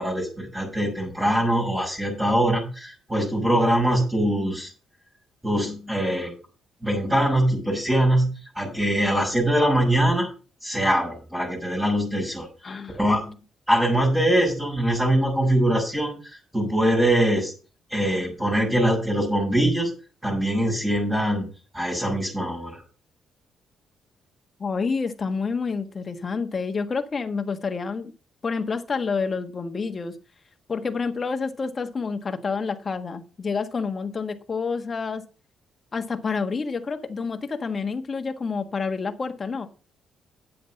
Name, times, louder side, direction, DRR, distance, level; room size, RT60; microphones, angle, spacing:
voice 1, 0.0-4.7 5.4-6.3 6.8-10.3 10.6-13.3 13.7-17.5 17.9-19.9 20.2-21.5 21.7-22.8, right 1 dB, 15° right, 5.5 m, -23 dB
voice 2, 12.6-13.0 24.6-28.1 28.4-30.1 30.7-35.2 35.9-39.7, left 5 dB, 35° left, 1.5 m, -28 dB
9.5 x 8.0 x 5.4 m
cardioid pair, 90°, 0 cm